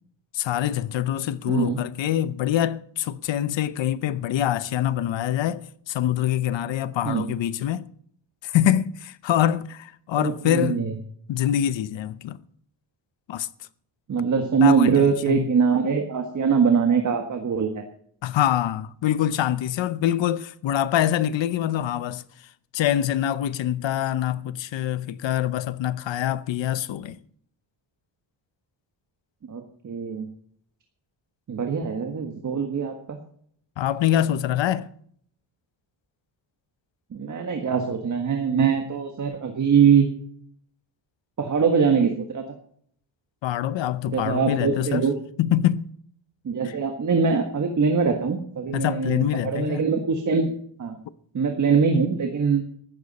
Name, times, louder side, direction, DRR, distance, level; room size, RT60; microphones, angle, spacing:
voice 1, 0.3-7.9 8.4-10.8 11.3-12.4 13.3-13.5 14.6-15.5 18.2-22.2 22.7-27.2 33.8-34.9 43.4-45.1 45.4-45.9 46.6-46.8 48.7-49.8, left 11 dB, 80° left, 0.8 m, -25 dB
voice 2, 1.5-1.8 7.0-7.2 10.2-10.9 14.1-17.8 29.5-30.3 31.5-33.2 37.1-40.1 41.4-42.4 44.1-45.2 46.4-50.5 50.8-51.0 51.3-52.6, right 6 dB, 40° right, 1.6 m, -22 dB
14.5 x 13.5 x 4.2 m
wide cardioid pair, 135°, 44 cm